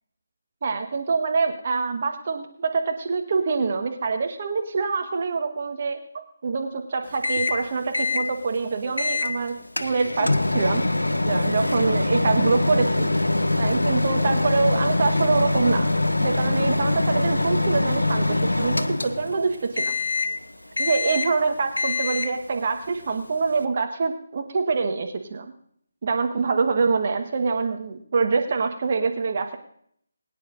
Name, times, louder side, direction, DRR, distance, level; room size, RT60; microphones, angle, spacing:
voice 1, 0.6-10.8 11.2-13.1 13.6-15.9 16.2-19.9 20.8-25.4 26.0-29.6, right 4 dB, 45° right, 4 dB, 1.4 m, -25 dB
Microwave oven, 7.2-7.6 7.9-8.3 9.0-9.3 9.8-19.4 19.8-20.4 20.8-21.4 21.8-22.4, left 2 dB, 80° left, 0.9 m, -23 dB
21.5 x 10.0 x 2.6 m, 0.65 s
figure-of-eight pair, 150°, 0 cm